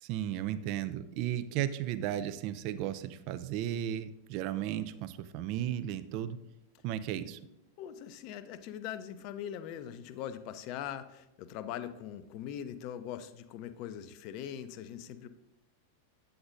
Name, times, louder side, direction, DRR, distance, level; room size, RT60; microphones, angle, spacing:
voice 1, 0.0-6.4 6.8-7.4, right 11 dB, 45° right, 12 dB, 0.4 m, -35 dB
voice 2, 7.8-15.3, left 10 dB, 40° left, 12 dB, 0.5 m, -41 dB
8.5 x 7.8 x 2.6 m, 0.88 s
figure-of-eight pair, 90°, 0 cm